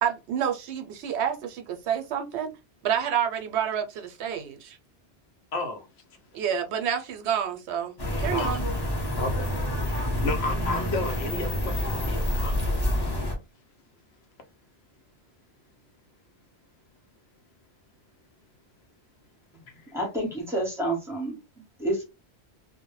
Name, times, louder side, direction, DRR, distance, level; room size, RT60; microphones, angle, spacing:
voice 1, 0.0-2.5 2.8-4.8 6.3-7.9 8.2-8.7, right 8 dB, 80° right, 0.8 m, -28 dB
voice 2, 5.5-5.9 8.2-8.6 9.0-12.9, left 2 dB, 70° left, 0.9 m, -33 dB
sound 1, 8.0-13.4, left 1 dB, 25° left, 0.6 m, -28 dB
voice 3, 19.9-21.4 21.8-22.0, right 1 dB, 5° right, 0.9 m, -28 dB
2.1 x 2.0 x 3.0 m
omnidirectional pair, 1.1 m